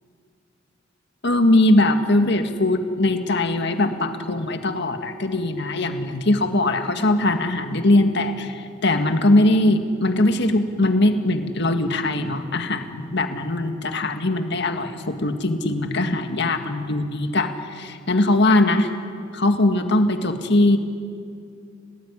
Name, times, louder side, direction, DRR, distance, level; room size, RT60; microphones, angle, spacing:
voice 1, 1.2-17.5 18.1-18.9 19.3-20.8, left 1 dB, 60° left, 7 dB, 1.9 m, -20 dB
29.5 x 18.5 x 9.9 m, 2.4 s
head